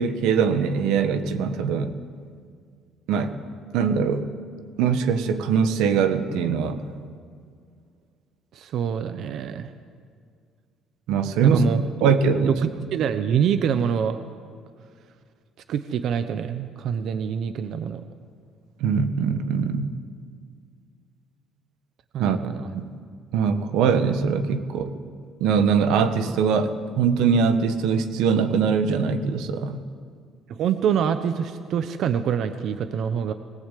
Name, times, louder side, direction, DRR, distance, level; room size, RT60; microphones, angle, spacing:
voice 1, 0.0-1.9 3.1-3.4 3.7-4.3 4.8-6.8 11.1-11.7 12.0-12.6 18.8-19.9 22.2-22.4 22.7-22.8 23.3-24.9 25.4-29.8, right 6 dB, 85° right, 9 dB, 1.6 m, -22 dB
voice 2, 8.5-9.7 11.4-11.8 12.5-14.2 15.7-18.0 22.1-22.7 30.5-33.3, right 8 dB, 50° right, 10 dB, 0.9 m, -25 dB
21.5 x 19.0 x 8.4 m, 2.1 s
cardioid pair, 175°, 0 cm